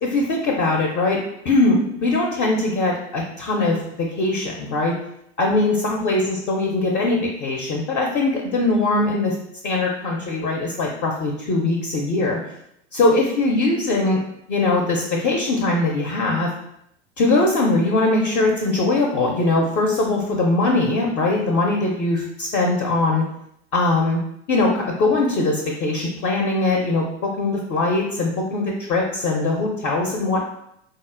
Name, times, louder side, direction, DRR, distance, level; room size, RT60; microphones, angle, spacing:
voice 1, 0.0-5.0 5.4-9.4 9.6-12.5 12.9-14.2 14.5-16.5 17.2-23.2 23.7-24.2 24.5-30.5, left 2 dB, 30° left, 0 dB, 0.4 m, -21 dB
3.8 x 2.0 x 2.4 m, 0.77 s
figure-of-eight pair, 85°, 35 cm